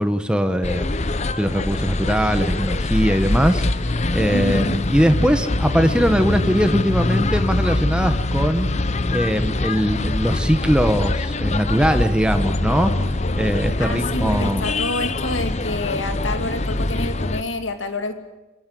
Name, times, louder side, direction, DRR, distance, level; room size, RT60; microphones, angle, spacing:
voice 1, 0.0-8.7 9.1-14.7, equal, 5° right, 8 dB, 1.1 m, -21 dB
sound 1, 0.6-17.4, left 2 dB, 35° left, 0.8 m, -23 dB
voice 2, 4.3-4.7 13.8-18.1, left 2 dB, 85° left, 8 dB, 2.6 m, -28 dB
24.5 x 23.0 x 7.7 m, 1.1 s
head